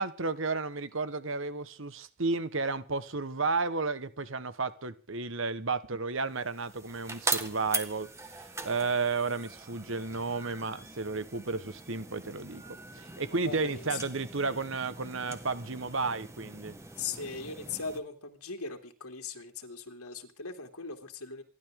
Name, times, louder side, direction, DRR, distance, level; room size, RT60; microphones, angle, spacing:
voice 1, 0.0-12.6 12.9-16.8, right 3 dB, 60° right, 1.3 m, -32 dB
sound 1, 6.3-18.0, right 3 dB, 15° right, 1.7 m, -41 dB
voice 2, 13.4-14.0 17.0-21.4, left 5 dB, 85° left, 2.9 m, -39 dB
28.0 x 12.5 x 3.8 m
head